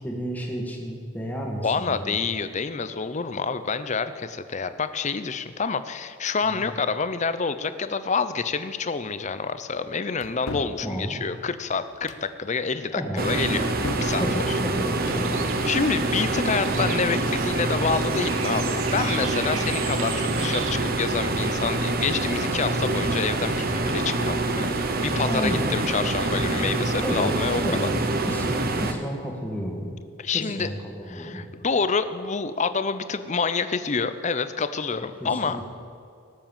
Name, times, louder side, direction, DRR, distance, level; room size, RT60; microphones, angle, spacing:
voice 1, 0.0-2.2 6.5-6.6 10.7-11.2 12.9-13.3 14.2-15.4 25.3-25.8 27.0-27.3 27.6-27.9 28.3-29.9 30.3-31.4 35.2-35.6, equal, 10° left, -1 dB, 2.0 m, -31 dB
voice 2, 1.6-13.7 14.0-14.6 15.7-27.9 30.2-30.7 31.1-35.6, left 5 dB, 35° left, 12 dB, 0.6 m, -28 dB
sound 1, 10.2-10.8 11.9-12.3 13.3-14.2 14.9-15.3, left 2 dB, 75° left, 0.9 m, -35 dB
sound 2, 13.2-28.9, right 2 dB, 45° right, 0.9 m, -26 dB
Bird, 15.0-20.7, right 7 dB, 70° right, 1.3 m, -37 dB
18.0 x 7.7 x 7.3 m, 2.4 s
head